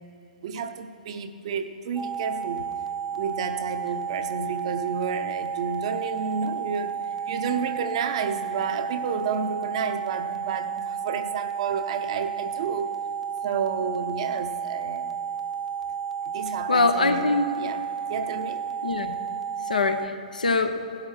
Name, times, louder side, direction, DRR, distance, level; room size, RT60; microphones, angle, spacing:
voice 1, 0.4-2.7 3.1-12.9 13.4-15.1 16.3-17.3 17.6-18.6, right 6 dB, 45° right, 9 dB, 0.7 m, -31 dB
sound 1, 2.0-20.1, right 7 dB, 5° right, 0.4 m, -32 dB
voice 2, 16.7-17.5 18.8-19.2 19.7-20.8, left 3 dB, 70° left, 8 dB, 0.8 m, -23 dB
17.0 x 12.0 x 3.2 m, 2.5 s
figure-of-eight pair, 115°, 4 cm